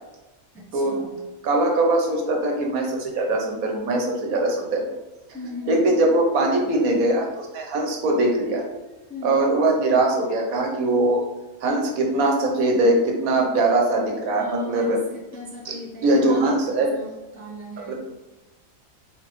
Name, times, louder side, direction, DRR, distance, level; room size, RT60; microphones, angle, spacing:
voice 1, 0.5-1.2 5.3-6.0 9.1-9.5 14.4-17.1 17.3-17.9, left 1 dB, 10° left, -4 dB, 0.4 m, -37 dB
voice 2, 1.4-4.8 5.7-8.6 9.2-11.2 11.6-15.0 15.6-15.7 16.0-16.9 17.8-17.9, right 2 dB, 85° right, 1 dB, 1.3 m, -21 dB
4.0 x 3.5 x 3.0 m, 1.1 s
omnidirectional pair, 1.5 m